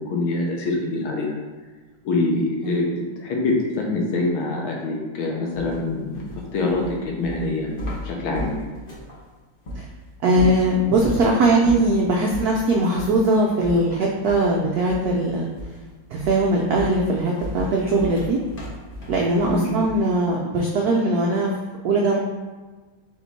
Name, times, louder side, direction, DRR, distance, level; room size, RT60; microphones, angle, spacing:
voice 1, 0.0-1.4 2.0-2.9 3.2-7.7 8.0-8.7 19.5-19.8, left 2 dB, 85° left, -1 dB, 1.7 m, -25 dB
sound 1, 5.5-9.2 9.6-9.8 10.3-11.3 11.6-12.0 12.3-12.5 12.9-13.2 13.6-14.6 14.9-15.2 15.6-15.9 16.2-20.1, equal, 45° left, 0.7 m, -34 dB
voice 2, 10.2-15.5 16.1-18.4 19.1-21.5 21.8-22.2, right 2 dB, 90° right, -2 dB, 0.8 m, -20 dB
3.6 x 3.5 x 4.0 m, 1.3 s
omnidirectional pair, 2.2 m